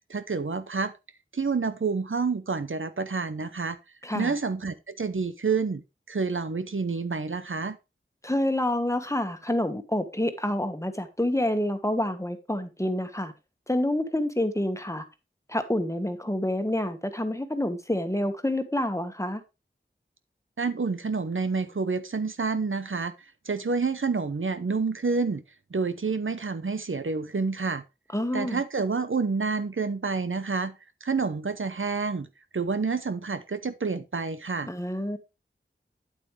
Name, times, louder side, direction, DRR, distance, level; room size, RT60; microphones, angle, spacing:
voice 1, 0.1-0.9 1.3-3.8 4.1-7.8 20.6-23.1 23.4-25.4 25.7-27.8 28.3-30.7 31.0-32.3 32.5-34.7, right 4 dB, 80° right, 0.8 m, -28 dB
voice 2, 4.0-4.3 8.2-13.3 13.7-15.0 15.5-19.4 28.1-28.6 34.7-35.2, left 1 dB, 15° left, 1.4 m, -28 dB
9.0 x 8.5 x 3.3 m
wide cardioid pair, 45°, 21 cm